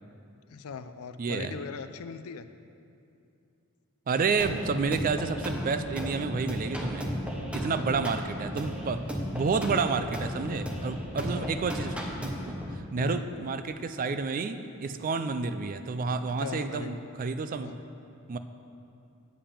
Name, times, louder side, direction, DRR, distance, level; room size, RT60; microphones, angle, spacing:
voice 1, 0.5-2.5 7.6-8.1 8.9-9.0 11.4-11.6 13.0-13.3 16.3-17.0 17.6-17.8, left 5 dB, 70° left, 11 dB, 0.4 m, -40 dB
voice 2, 1.2-1.5 4.1-7.1 7.5-9.0 9.3-17.7 18.3-18.4, right 4 dB, 40° right, 10 dB, 0.3 m, -30 dB
sound 1, 4.4-12.8, equal, 5° right, 0.7 m, -34 dB
8.7 x 5.4 x 7.2 m, 2.6 s
head